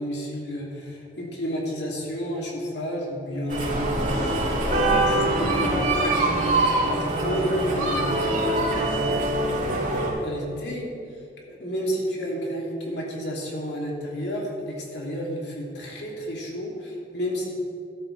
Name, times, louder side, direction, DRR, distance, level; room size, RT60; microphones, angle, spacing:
voice 1, 0.0-4.3 5.0-6.6 6.9-9.2 10.2-10.9 11.5-17.5, equal, 70° left, -3 dB, 2.8 m, -31 dB
sound 1, 3.5-10.1, right 2 dB, 50° right, 3.1 m, -23 dB
14.0 x 12.5 x 3.4 m, 2.5 s
head